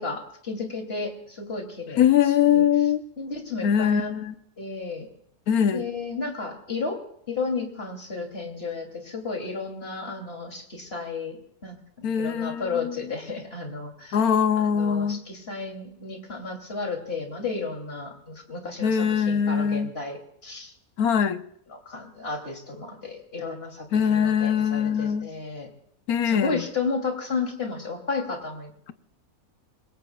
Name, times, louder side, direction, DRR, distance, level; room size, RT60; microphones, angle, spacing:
voice 1, 0.0-2.6 3.2-4.1 4.6-5.1 5.7-7.0 7.3-14.2 14.5-20.7 21.7-25.7 26.2-28.9, left 4 dB, 40° left, 3.3 m, -33 dB
voice 2, 2.0-3.0 3.6-4.3 5.5-5.9 12.0-12.9 14.1-15.2 18.8-19.9 21.0-21.4 23.9-25.3 26.1-26.6, left 8 dB, 85° left, 1.4 m, -22 dB
27.0 x 21.5 x 2.4 m
omnidirectional pair, 1.5 m